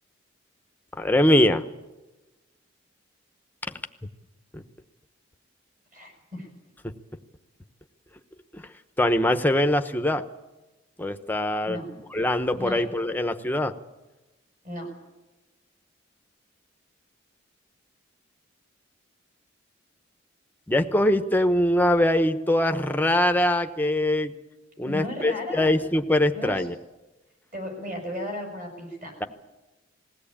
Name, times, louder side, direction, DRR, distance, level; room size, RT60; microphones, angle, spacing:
voice 1, 0.9-1.6 4.5-4.6 6.8-6.9 8.5-8.6 9.0-10.2 11.0-11.8 12.1-13.7 20.7-24.3 24.8-26.7, left 1 dB, 10° left, 8 dB, 0.9 m, -22 dB
voice 2, 5.9-6.5 11.7-11.9 12.6-12.8 14.6-14.9 24.8-25.7 26.3-26.7 27.5-29.3, left 1 dB, 40° right, 2 dB, 6.3 m, -35 dB
20.5 x 16.5 x 8.7 m, 1.1 s
head